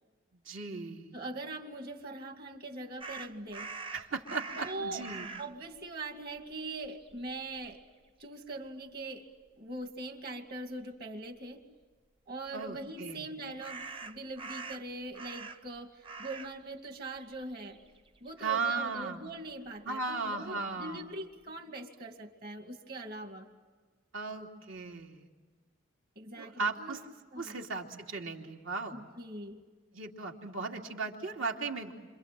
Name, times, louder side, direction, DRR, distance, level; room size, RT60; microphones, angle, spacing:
voice 1, 0.4-1.2 3.9-5.3 12.5-13.3 18.4-19.2 19.8-21.0 24.1-25.3 26.4-27.0 27.4-29.0 29.9-31.9, right 4 dB, 75° right, 1 dB, 3.0 m, -36 dB
voice 2, 1.1-3.7 4.5-5.0 5.4-7.8 8.2-9.3 9.6-11.6 12.3-17.8 18.2-23.5 26.2-27.0 27.3-27.6 28.9-29.6, right 2 dB, 50° right, 4 dB, 2.6 m, -42 dB
sound 1, 3.0-5.6 6.4-6.5 6.8-7.7 13.6-15.8 16.0-16.6 16.9-18.5, right 4 dB, 25° right, 0.8 m, -44 dB
29.0 x 26.5 x 7.7 m, 1.4 s
head